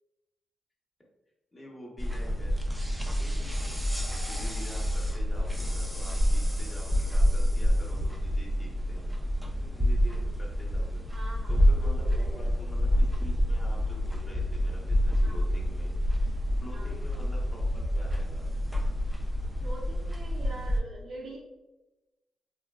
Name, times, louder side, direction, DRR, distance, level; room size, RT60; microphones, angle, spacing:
voice 1, 1.5-2.5 3.2-3.5 4.2-9.0 9.6-11.0 11.5-16.2 16.6-18.5, equal, 30° left, -3 dB, 0.8 m, -47 dB
sound 1, 2.0-20.8, equal, 5° right, 0.4 m, -28 dB
voice 2, 11.1-11.6 12.0-12.6 15.2-15.5 16.7-17.0 19.2-19.3 19.6-21.4, right 2 dB, 65° right, -4 dB, 0.5 m, -44 dB
3.2 x 2.2 x 2.2 m, 1.1 s
cardioid pair, 70°, 0 cm